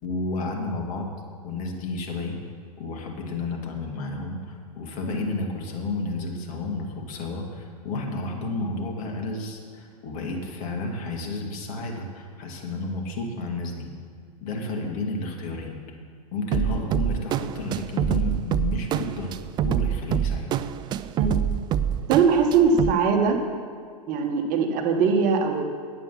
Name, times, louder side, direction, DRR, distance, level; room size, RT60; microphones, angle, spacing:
voice 1, 0.0-1.1 1.4-2.4 2.8-13.9 14.4-15.7 16.3-19.3 19.6-20.5, left 2 dB, 40° left, 1 dB, 2.2 m, -31 dB
sound 1, 16.5-22.9, right 9 dB, 20° right, 0.3 m, -26 dB
voice 2, 22.1-23.4 24.1-25.6, right 5 dB, 40° right, 4 dB, 1.6 m, -21 dB
9.6 x 8.3 x 6.2 m, 2.1 s
hypercardioid pair, 105°, 20 cm